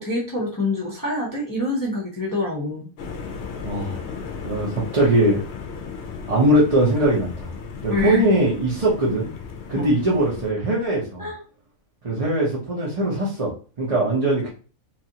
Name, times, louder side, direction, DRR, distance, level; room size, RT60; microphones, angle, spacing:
voice 1, 0.0-2.9 7.9-8.2 9.7-9.9 11.2-11.4, left 2 dB, 25° left, -4 dB, 0.5 m, -26 dB
sound 1, 3.0-10.5, left 5 dB, 65° left, 0.8 m, -35 dB
voice 2, 3.6-4.0 4.4-5.4 6.3-7.5 7.8-9.3 9.7-11.3 12.0-13.5 13.8-14.5, right 1 dB, 35° right, -5 dB, 0.7 m, -21 dB
3.0 x 2.5 x 2.8 m, 0.37 s
omnidirectional pair, 1.5 m